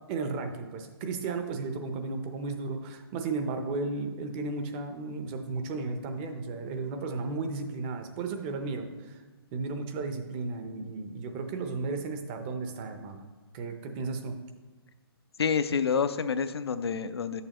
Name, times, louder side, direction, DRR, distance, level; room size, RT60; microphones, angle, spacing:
voice 1, 0.1-9.2 9.5-13.2 13.5-14.4, right 3 dB, 25° right, 6 dB, 0.6 m, -34 dB
voice 2, 15.4-17.4, left 6 dB, 80° left, 11 dB, 0.5 m, -28 dB
9.8 x 6.7 x 3.0 m, 1.3 s
hypercardioid pair, 150°, 13 cm